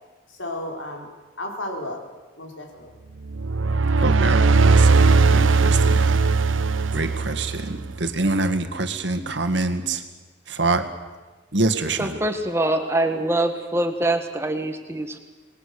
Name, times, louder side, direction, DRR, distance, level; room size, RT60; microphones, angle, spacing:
voice 1, 0.3-1.1 1.4-2.0 2.4-2.9, left 1 dB, 80° left, 2 dB, 4.6 m, -33 dB
sound 1, 3.3-8.0, right 4 dB, 85° right, 0.9 m, -18 dB
voice 2, 4.0-10.0 10.5-10.9 11.5-12.2, right 2 dB, 65° right, 7 dB, 1.9 m, -26 dB
voice 3, 12.0-15.2, right 1 dB, 15° right, 6 dB, 1.6 m, -24 dB
27.5 x 20.0 x 7.0 m, 1.3 s
head